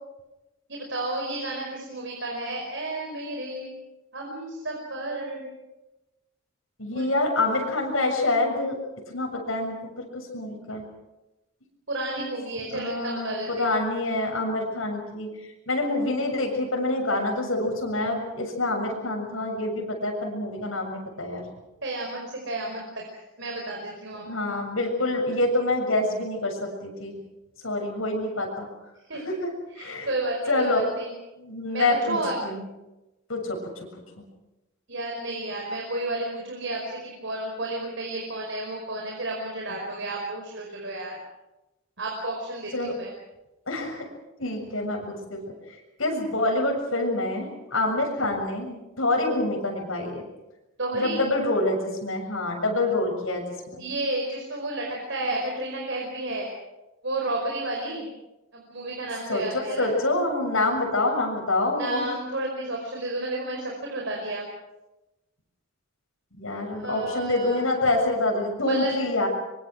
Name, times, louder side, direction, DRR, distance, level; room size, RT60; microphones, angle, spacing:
voice 1, 0.7-3.7 4.1-5.5 6.9-7.1 11.9-13.7 21.8-24.5 29.1-29.2 29.8-31.1 31.7-32.4 34.9-41.2 42.0-43.1 50.8-51.2 53.8-56.5 57.0-58.1 58.5-59.9 61.7-64.5 66.7-67.7 68.6-69.1, right 2 dB, 65° right, -1 dB, 5.2 m, -32 dB
voice 2, 6.8-8.8 9.1-10.8 12.2-12.3 12.7-15.3 15.7-21.4 24.3-27.2 27.6-28.7 29.3-29.5 29.8-30.1 30.5-30.8 31.4-32.2 32.4-32.6 33.3-33.6 42.7-42.9 43.7-44.0 44.4-45.4 46.0-50.2 50.9-53.8 59.3-62.1 66.4-69.3, left 2 dB, 85° left, 2 dB, 7.2 m, -26 dB
24.5 x 24.5 x 6.3 m, 1.0 s
head